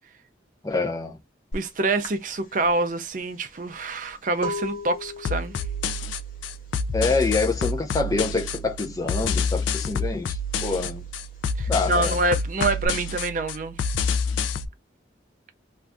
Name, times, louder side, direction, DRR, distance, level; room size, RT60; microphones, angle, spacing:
voice 1, 0.6-1.2 6.9-11.0 11.7-12.1, left 3 dB, 20° left, 0.5 m, -26 dB
sound 1, 1.5-1.7 2.0-7.7 8.0-8.5 8.8-9.9 10.3-12.9, left 2 dB, 45° left, 0.9 m, -37 dB
voice 2, 1.5-5.5 11.6-13.8, right 2 dB, 45° right, 0.4 m, -26 dB
sound 2, 5.2-14.7, left 4 dB, 85° left, 0.4 m, -28 dB
2.5 x 2.3 x 3.4 m
head